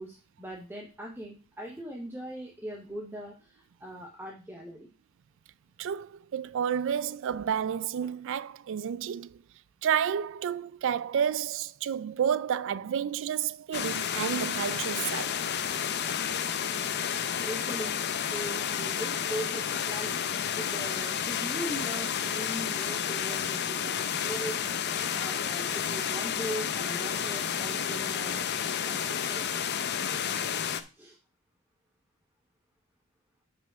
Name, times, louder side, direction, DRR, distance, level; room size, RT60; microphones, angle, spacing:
voice 1, 0.0-4.9 17.4-20.2 20.6-23.9 24.2-24.8 25.1-29.5 30.9-31.2, right 1 dB, 10° right, 0.9 m, -40 dB
voice 2, 5.8-9.4 9.8-15.4, right 8 dB, 60° right, 0.3 m, -30 dB
sound 1, 13.7-30.8, left 8 dB, 50° left, 0.6 m, -31 dB
5.7 x 4.9 x 5.9 m
head